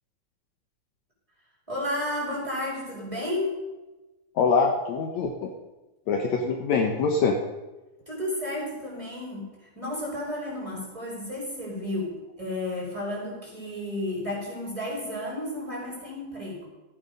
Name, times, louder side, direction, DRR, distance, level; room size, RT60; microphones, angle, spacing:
voice 1, 1.7-3.5 8.1-9.5 9.7-16.7, left 1 dB, 10° right, -5 dB, 5.9 m, -32 dB
voice 2, 4.4-5.5 6.1-7.4, left 4 dB, 65° left, 2 dB, 2.2 m, -24 dB
15.0 x 9.4 x 5.4 m, 1.1 s
omnidirectional pair, 3.7 m